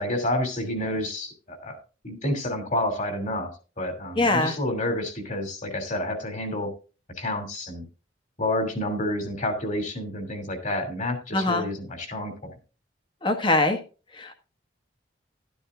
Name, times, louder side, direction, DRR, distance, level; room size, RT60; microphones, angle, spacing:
voice 1, 0.0-1.8 2.0-3.5 3.8-6.7 7.2-7.9 8.4-12.5, left 1 dB, 40° left, 5 dB, 2.8 m, -29 dB
voice 2, 4.2-4.5 11.3-11.6 13.2-13.8 14.2-14.3, left 2 dB, 25° left, 6 dB, 1.4 m, -22 dB
12.0 x 12.0 x 2.5 m, 0.33 s
head